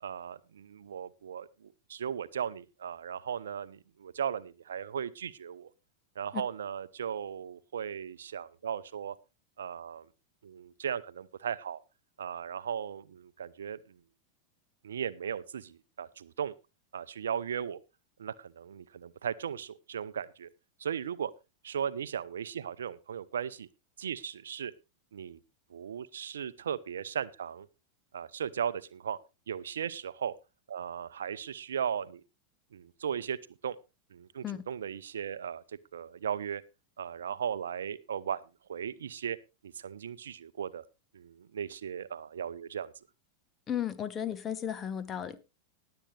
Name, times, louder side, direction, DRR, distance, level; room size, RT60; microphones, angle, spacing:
voice 1, 0.0-5.7 6.2-9.1 9.6-10.1 10.4-11.8 12.2-14.0 14.8-16.5 16.9-17.8 18.2-20.5 20.8-21.3 21.6-23.7 24.0-24.7 25.1-25.4 25.7-27.7 28.1-29.2 29.5-30.3 30.7-32.2 32.7-33.4 33.6-33.8 34.1-35.6 35.9-36.6 37.0-38.4 38.7-39.4 39.6-40.8 41.1-42.9, right 8 dB, 65° right, 0.6 m, -37 dB
voice 2, 43.7-45.4, left 9 dB, 25° left, 1.1 m, -34 dB
20.0 x 7.9 x 3.3 m
figure-of-eight pair, 90°, 0 cm